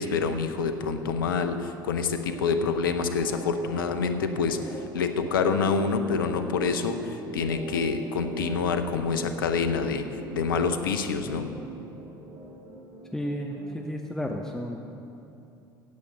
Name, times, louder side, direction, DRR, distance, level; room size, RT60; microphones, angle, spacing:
voice 1, 0.0-10.1 10.3-11.5, left 5 dB, 75° left, 8 dB, 0.7 m, -27 dB
sound 1, 2.2-14.0, right 1 dB, 55° right, 2.0 m, -41 dB
voice 2, 13.1-14.8, equal, 5° left, 2 dB, 0.8 m, -32 dB
9.6 x 8.0 x 7.8 m, 2.8 s
figure-of-eight pair, 65°, 11 cm